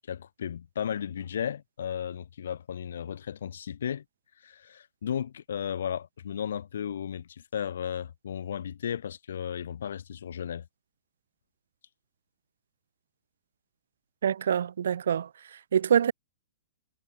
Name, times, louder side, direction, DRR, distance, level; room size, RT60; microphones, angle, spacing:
voice 1, 0.1-4.0 4.4-10.6, left 8 dB, 80° left, 0.5 m, -34 dB
voice 2, 14.2-15.3 15.7-16.1, right 8 dB, 85° right, 0.3 m, -25 dB
hypercardioid pair, 170°, 0 cm